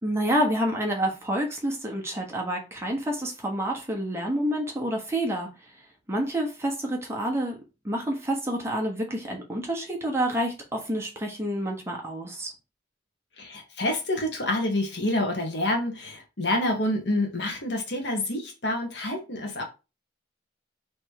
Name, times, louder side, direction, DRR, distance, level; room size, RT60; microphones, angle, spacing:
voice 1, 0.0-5.5 6.1-7.6 7.8-12.5, right 1 dB, 15° right, 1.0 m, -28 dB
voice 2, 13.4-19.6, left 1 dB, 70° left, 1.4 m, -27 dB
3.4 x 3.1 x 4.6 m
head